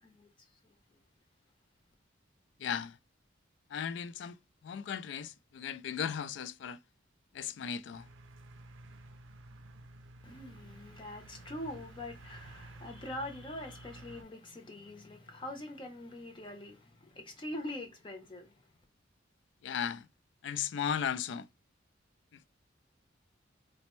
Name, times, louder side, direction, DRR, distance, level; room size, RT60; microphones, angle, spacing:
voice 1, 0.0-1.0 10.2-18.6, left 1 dB, 25° left, 0.7 m, -44 dB
voice 2, 2.6-3.0 3.7-4.4 4.6-6.8 7.3-8.1 19.6-20.1 20.4-21.5 22.3-22.4, left 8 dB, 65° left, 0.3 m, -36 dB
sound 1, 7.9-14.2, right 2 dB, 75° right, 0.4 m, -52 dB
4.1 x 2.1 x 3.0 m
head